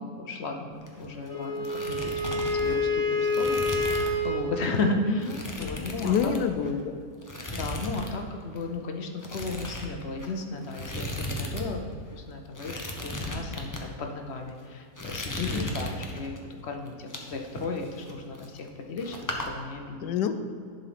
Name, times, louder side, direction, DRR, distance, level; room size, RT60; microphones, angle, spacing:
voice 1, 0.0-5.3 5.6-6.3 6.6-6.8 7.5-20.1, left 3 dB, 55° left, 3 dB, 0.8 m, -34 dB
sound 1, 0.7-1.3 1.5-4.3 4.6-4.8 5.2-6.8 7.2-8.2 8.4-8.6 9.2-11.7 11.9-12.0 12.5-13.8 14.4-14.6 15.0-16.4 16.9-18.7 19.0-19.5, left 1 dB, 20° left, 0.5 m, -36 dB
Wind instrument woodwind instrument, 1.3-4.5, left 2 dB, 10° right, 2.3 m, -27 dB
voice 2, 5.6-7.1 15.4-15.7 20.0-20.3, left 7 dB, 80° left, 9 dB, 1.2 m, -28 dB
11.0 x 4.1 x 5.8 m, 2.2 s
omnidirectional pair, 1.8 m